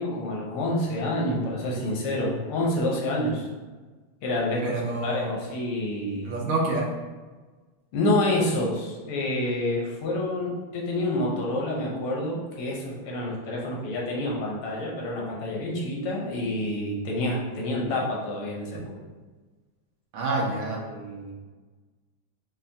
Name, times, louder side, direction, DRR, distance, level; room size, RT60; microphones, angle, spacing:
voice 1, 0.0-3.5 4.2-6.3 7.9-19.0 20.8-21.3, left 1 dB, 80° left, -2 dB, 1.7 m, -28 dB
voice 2, 4.6-5.3 6.2-6.8 20.1-20.8, right 2 dB, 80° right, -1 dB, 1.5 m, -27 dB
5.8 x 2.0 x 2.7 m, 1.3 s
omnidirectional pair, 2.4 m